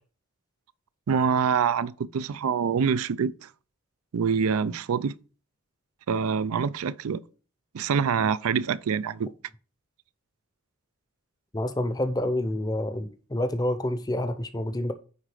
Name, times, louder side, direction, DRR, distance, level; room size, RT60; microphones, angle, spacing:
voice 1, 1.1-3.5 4.1-5.1 6.1-7.2 7.7-9.3, right 6 dB, 80° right, 0.4 m, -25 dB
voice 2, 11.5-14.9, left 1 dB, 15° left, 0.6 m, -28 dB
9.7 x 3.8 x 4.9 m
head